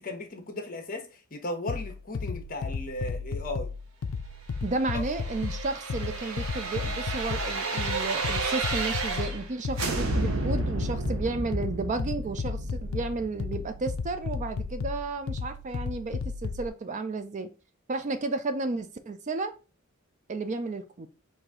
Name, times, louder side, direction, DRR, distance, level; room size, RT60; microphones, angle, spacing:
voice 1, 0.0-3.7, left 1 dB, 40° left, 1.1 m, -36 dB
sound 1, 1.7-16.7, left 4 dB, 70° left, 0.4 m, -34 dB
voice 2, 4.6-17.5 17.9-19.5 20.3-21.1, right 3 dB, 35° right, 0.4 m, -32 dB
sound 2, 4.7-9.5 9.8-14.6 15.0-15.1, right 3 dB, 75° right, 0.9 m, -32 dB
4.9 x 2.7 x 3.6 m
head